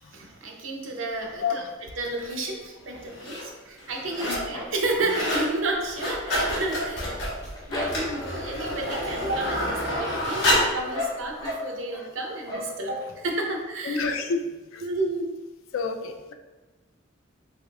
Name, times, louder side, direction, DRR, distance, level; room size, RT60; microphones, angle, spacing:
voice 1, 0.0-1.6 2.0-7.2 7.7-14.1 14.8-15.3, right 2 dB, 75° right, 1 dB, 0.6 m, -31 dB
sound 1, 1.2-2.0 2.4-3.7 4.0-8.4 8.9-9.3 9.6-12.1 12.4-13.1 13.5-13.6 13.9-14.0, left 1 dB, 20° left, 0.7 m, -37 dB
sound 2, 2.2-2.3 3.0-3.4 3.8-4.5 4.8-5.5 5.8-10.8 11.5-11.6, equal, 60° left, 1.3 m, -28 dB
voice 2, 13.9-14.4 14.7-14.8 15.7-16.3, left 5 dB, 85° left, 6 dB, 0.4 m, -28 dB
3.4 x 3.4 x 2.3 m, 1.2 s
head